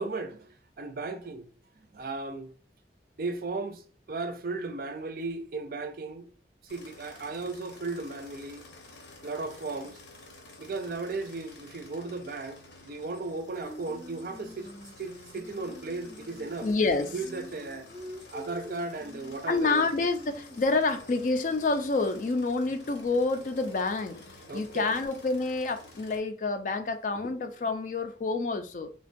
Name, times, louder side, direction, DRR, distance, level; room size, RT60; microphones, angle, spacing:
voice 1, 0.0-1.5 1.9-2.5 3.2-6.3 6.6-8.6 9.2-10.0 10.6-12.6 12.9-14.7 15.0-16.7 17.1-17.9 18.3-19.9 24.5-24.9, right 3 dB, 50° right, 0.4 m, -36 dB
sound 1, 6.7-26.2, left 2 dB, 85° left, 0.9 m, -51 dB
Singing, 13.6-20.9, equal, 5° right, 0.6 m, -47 dB
voice 2, 16.6-17.1 19.5-28.9, left 3 dB, 45° left, 0.3 m, -28 dB
3.4 x 2.2 x 2.5 m
head